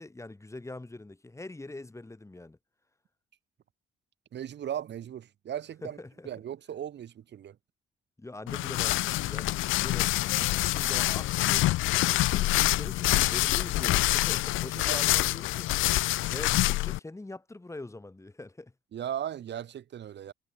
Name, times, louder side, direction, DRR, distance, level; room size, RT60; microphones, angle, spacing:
voice 1, 0.0-2.6 5.8-6.3 8.2-11.7 12.3-15.7 16.3-18.7 20.3-20.4, left 2 dB, 15° left, 4.5 m, -43 dB
voice 2, 4.3-6.0 6.3-7.6 14.9-15.0 18.9-20.3, right 10 dB, 60° right, 1.8 m, -37 dB
sound 1, 8.5-17.0, left 17 dB, 90° left, 0.6 m, -26 dB
cardioid pair, 90°, 20 cm